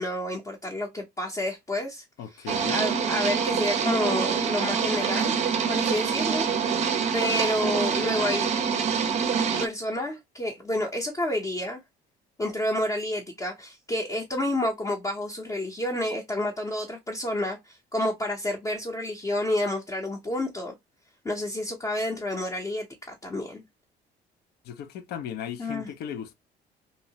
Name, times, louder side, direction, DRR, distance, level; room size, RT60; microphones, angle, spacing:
voice 1, 0.0-5.4 5.7-6.8 7.1-8.5 9.6-11.8 12.4-20.7 21.2-23.6 25.6-25.9, left 1 dB, 20° left, 0.6 m, -30 dB
voice 2, 2.2-2.8 24.6-26.3, left 8 dB, 70° left, 0.5 m, -36 dB
sound 1, 2.5-9.7, right 6 dB, 40° right, 0.5 m, -25 dB
2.7 x 2.0 x 2.7 m
cardioid pair, 110°, 17 cm